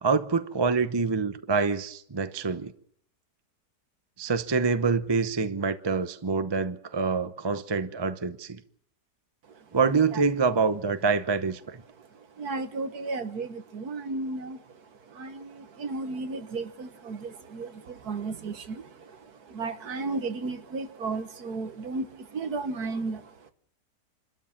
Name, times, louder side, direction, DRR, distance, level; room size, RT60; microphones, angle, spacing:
voice 1, 0.0-2.7 4.2-8.6 9.7-11.8, right 5 dB, 25° right, 0.6 m, -26 dB
voice 2, 12.0-14.6 15.0-23.5, right 3 dB, 65° right, 1.8 m, -34 dB
27.5 x 13.0 x 7.3 m
omnidirectional pair, 1.8 m